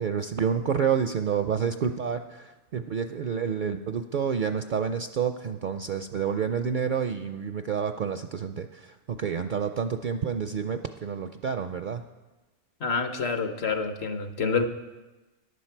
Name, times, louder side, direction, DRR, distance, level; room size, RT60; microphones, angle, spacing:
voice 1, 0.0-8.7 9.2-12.0, right 7 dB, 60° right, 8 dB, 0.5 m, -29 dB
voice 2, 12.8-14.7, left 4 dB, 60° left, 8 dB, 1.1 m, -27 dB
15.0 x 10.5 x 4.5 m, 1.1 s
omnidirectional pair, 1.2 m